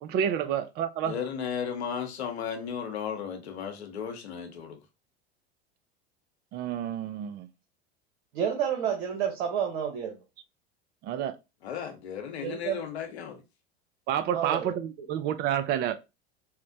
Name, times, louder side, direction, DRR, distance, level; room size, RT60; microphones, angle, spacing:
voice 1, 0.0-1.2 6.5-7.5 11.0-11.4 14.1-15.9, right 9 dB, 30° right, 0.4 m, -29 dB
voice 2, 1.1-4.8 11.6-13.4, left 7 dB, 85° left, 0.9 m, -35 dB
voice 3, 8.3-10.2 12.4-12.8 14.3-14.8, right 8 dB, 65° right, 0.9 m, -30 dB
4.2 x 2.1 x 2.7 m
hypercardioid pair, 85°, 32 cm